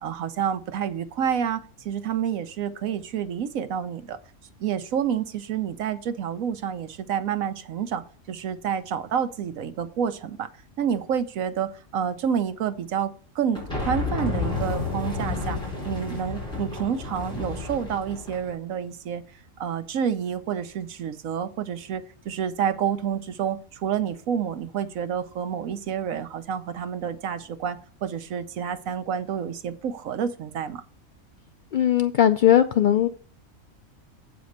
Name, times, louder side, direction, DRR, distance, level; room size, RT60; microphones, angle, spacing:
voice 1, 0.0-4.2 4.6-10.5 10.8-15.6 15.8-19.2 19.6-30.8, right 8 dB, 75° right, 11 dB, 1.2 m, -29 dB
sound 1, 13.5-18.5, left 3 dB, 5° left, 4.7 m, -31 dB
voice 2, 31.7-33.1, left 10 dB, 80° left, 9 dB, 0.4 m, -19 dB
8.3 x 5.1 x 6.4 m, 0.41 s
omnidirectional pair, 1.4 m